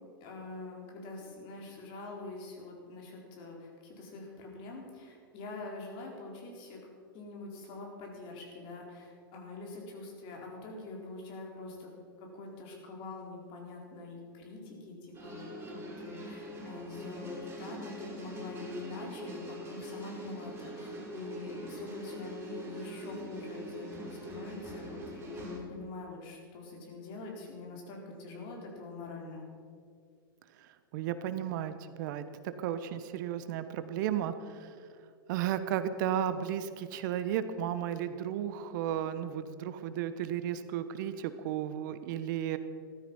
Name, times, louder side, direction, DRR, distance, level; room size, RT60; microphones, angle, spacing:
voice 1, 0.2-6.8 7.1-11.9 12.2-29.4, left 3 dB, 45° left, 0 dB, 4.4 m, -44 dB
sound 1, 15.1-25.6, equal, 20° right, 4.8 m, -43 dB
voice 2, 30.9-32.2 32.6-34.7 35.3-42.6, right 10 dB, 60° right, 11 dB, 1.0 m, -34 dB
15.0 x 13.0 x 5.5 m, 2.2 s
hypercardioid pair, 110°, 12 cm